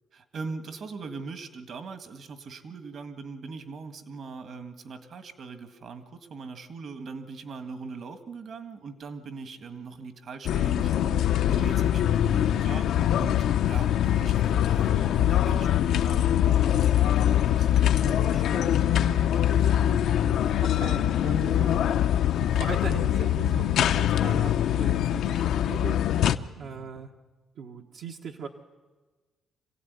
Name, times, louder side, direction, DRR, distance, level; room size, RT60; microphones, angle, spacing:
voice 1, 0.1-11.2 11.5-16.5 26.6-26.9, right 4 dB, 50° right, 9 dB, 1.8 m, -41 dB
sound 1, 10.5-26.4, left 11 dB, 75° left, 0.7 m, -23 dB
voice 2, 17.5-19.3 19.8-21.8 22.5-26.0 26.2-27.1 27.6-28.5, right 6 dB, 70° right, 1 dB, 1.4 m, -40 dB
25.5 x 16.5 x 9.5 m, 1.3 s
cardioid pair, 120°, 0 cm